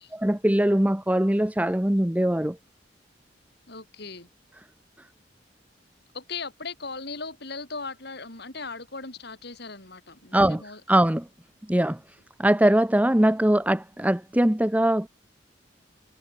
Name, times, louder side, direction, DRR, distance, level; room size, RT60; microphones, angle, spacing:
voice 1, 0.2-2.6 10.3-10.6 10.9-11.3 11.7-12.0 12.4-15.1, right 1 dB, 10° right, 0.8 m, -21 dB
voice 2, 3.7-4.3 6.1-10.8, left 4 dB, 65° left, 6.8 m, -38 dB
head